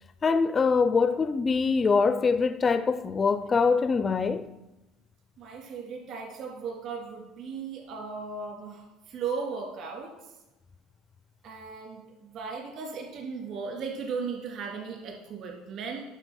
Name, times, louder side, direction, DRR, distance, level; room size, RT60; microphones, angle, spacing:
voice 1, 0.2-4.5, left 5 dB, 25° left, 0.4 m, -24 dB
voice 2, 5.4-10.1 11.4-16.0, right 5 dB, 50° right, 3.2 m, -36 dB
9.9 x 6.4 x 6.4 m
cardioid pair, 140°, 0 cm